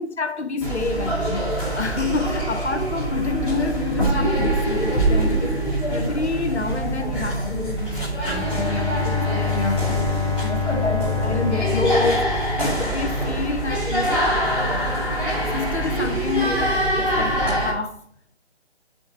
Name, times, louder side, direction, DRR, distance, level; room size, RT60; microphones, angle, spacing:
voice 1, 0.0-5.6 5.9-15.0 15.4-18.0, left 4 dB, 85° left, 0.8 m, -28 dB
sound 1, 0.6-17.7, right 1 dB, 5° right, 1.8 m, -24 dB
Bowed string instrument, 8.3-13.5, left 7 dB, 30° right, 1.3 m, -27 dB
6.4 x 3.7 x 4.6 m
figure-of-eight pair, 145°, 33 cm